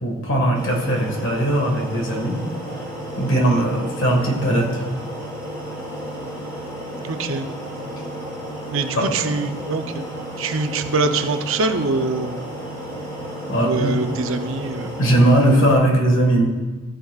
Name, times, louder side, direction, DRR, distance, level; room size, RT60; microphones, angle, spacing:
voice 1, 0.0-2.4 3.2-4.8 9.0-9.1 13.5-14.0 15.0-16.4, right 1 dB, 60° left, 1 dB, 1.7 m, -19 dB
sound 1, 0.5-15.7, equal, 20° left, 3.0 m, -33 dB
voice 2, 3.3-3.7 7.1-7.5 8.7-10.1 10.4-12.3 13.6-15.0, right 3 dB, 65° right, 7 dB, 0.6 m, -24 dB
14.0 x 9.0 x 2.4 m, 1.3 s
head